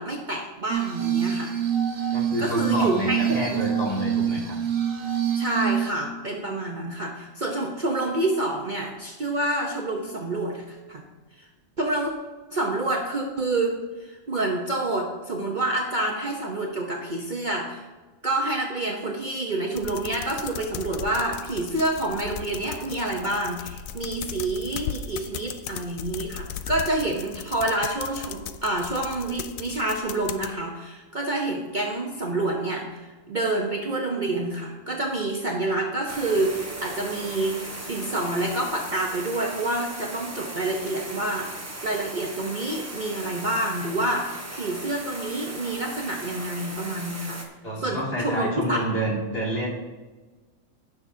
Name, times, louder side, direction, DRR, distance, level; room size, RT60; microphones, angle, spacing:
voice 1, 0.0-1.5 2.4-3.6 5.4-11.0 11.4-11.5 11.8-12.1 12.5-17.8 18.2-41.5 41.8-47.4 47.8-48.8, right 2 dB, 40° right, 0 dB, 0.9 m, -28 dB
Glass, 0.7-5.9, right 9 dB, 70° right, 1.3 m, -26 dB
voice 2, 2.1-4.6 47.6-49.7, right 1 dB, 45° left, -4 dB, 2.6 m, -28 dB
sound 1, 19.8-30.5, left 9 dB, 75° left, 1.0 m, -37 dB
sound 2, 36.1-47.5, right 1 dB, 15° right, 0.8 m, -38 dB
16.0 x 6.4 x 2.7 m, 1.3 s
omnidirectional pair, 1.5 m